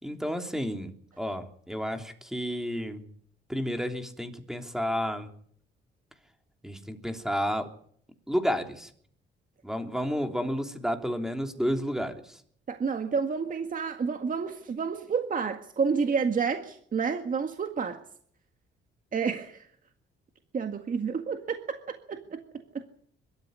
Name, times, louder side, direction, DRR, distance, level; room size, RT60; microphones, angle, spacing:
voice 1, 0.0-3.1 3.5-5.3 6.6-7.7 8.3-8.9 9.6-12.4, equal, ahead, 5 dB, 3.2 m, -31 dB
voice 2, 12.7-18.0 19.1-19.7 20.5-22.9, right 5 dB, 40° right, 6 dB, 1.9 m, -30 dB
22.5 x 13.5 x 9.5 m, 0.64 s
cardioid pair, 90°, 20 cm